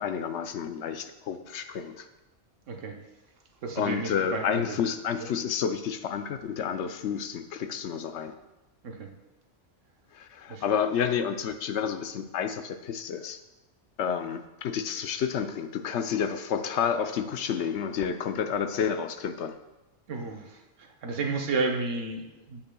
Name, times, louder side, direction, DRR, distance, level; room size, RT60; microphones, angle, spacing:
voice 1, 0.0-2.1 3.8-8.3 10.1-13.4 14.0-19.6, left 7 dB, 70° left, 9 dB, 0.9 m, -30 dB
voice 2, 3.6-4.8 8.8-9.1 10.5-10.6 20.1-22.6, right 3 dB, 90° right, 3 dB, 1.3 m, -32 dB
15.5 x 5.5 x 2.3 m, 1.0 s
omnidirectional pair, 1.3 m